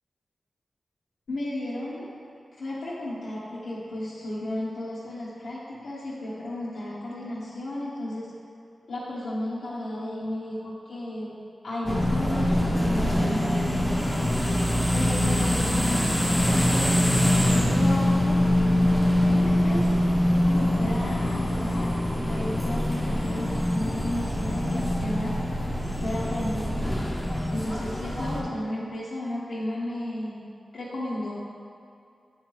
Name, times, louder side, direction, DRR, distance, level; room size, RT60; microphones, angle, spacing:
voice 1, 1.3-2.1 2.6-8.3 8.9-11.3 11.6-14.0 14.9-17.1 17.6-18.5 19.2-20.0 20.5-25.7 26.0-27.1 27.5-30.4 30.7-31.3, left 1 dB, 80° left, -10 dB, 1.2 m, -34 dB
sound 1, 11.8-28.4, left 1 dB, ahead, 0.9 m, -24 dB
8.9 x 3.2 x 4.5 m, 2.4 s
wide cardioid pair, 110°, 0 cm